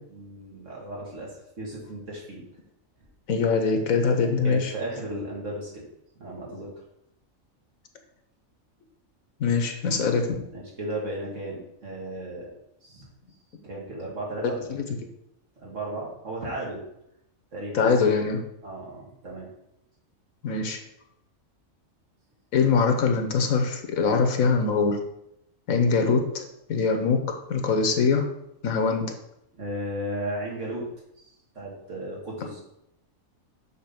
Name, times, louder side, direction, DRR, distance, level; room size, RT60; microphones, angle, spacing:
voice 1, 0.1-1.3 1.6-2.4 4.4-5.8 6.2-6.7 10.5-12.5 12.8-13.1 13.6-14.7 15.6-16.9 17.5-17.8 18.6-19.5 29.5-30.9 31.2-31.3 31.6-32.6, right 1 dB, 65° right, -4 dB, 2.5 m, -35 dB
voice 2, 3.3-4.7 9.4-10.4 14.7-14.8 17.7-18.4 20.4-20.8 22.5-25.0 25.7-26.4 26.7-28.2 28.6-29.1, left 5 dB, 80° left, 4 dB, 1.4 m, -23 dB
7.1 x 4.1 x 5.9 m, 0.81 s
omnidirectional pair, 1.4 m